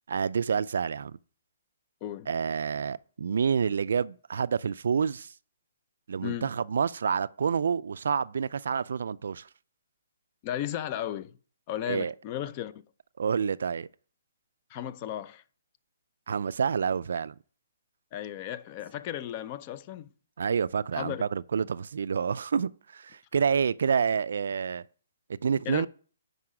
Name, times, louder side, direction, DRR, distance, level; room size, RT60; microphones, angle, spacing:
voice 1, 0.1-1.2 2.3-5.3 6.1-9.5 11.9-12.1 13.2-13.9 16.3-17.3 20.4-24.8 25.4-25.9, right 6 dB, 70° right, 0.4 m, -28 dB
voice 2, 10.4-11.3 11.7-12.7 14.7-15.4 18.1-20.1 21.0-21.2 25.7-25.9, left 11 dB, 30° left, 0.5 m, -35 dB
9.7 x 5.4 x 5.0 m
hypercardioid pair, 155°, 0 cm